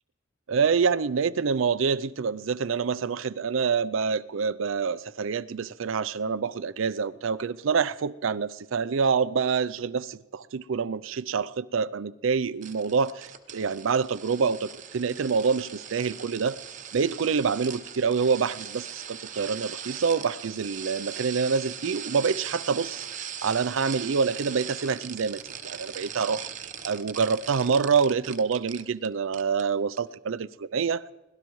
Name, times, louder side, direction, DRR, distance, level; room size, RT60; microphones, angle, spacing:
voice 1, 0.5-16.6 16.9-23.1 23.4-26.5 26.8-31.0, right 5 dB, 80° right, 0.5 m, -26 dB
sound 1, 12.6-29.1 29.3-29.6 30.0-30.1, right 8 dB, 40° right, 0.9 m, -40 dB
25.0 x 18.0 x 3.1 m
head